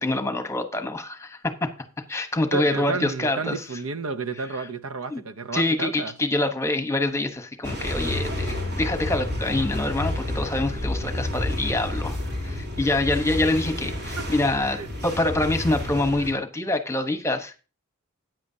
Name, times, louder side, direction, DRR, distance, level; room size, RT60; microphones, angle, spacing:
voice 1, 0.0-1.4 2.1-3.6 5.1-5.2 5.5-12.2 12.4-17.6, left 2 dB, 15° left, 1.1 m, -25 dB
voice 2, 2.5-6.1 14.2-14.3 14.6-14.9, right 4 dB, 90° right, 0.8 m, -31 dB
sound 1, 7.6-16.3, left 1 dB, 55° right, 3.2 m, -30 dB
14.5 x 9.1 x 2.8 m
head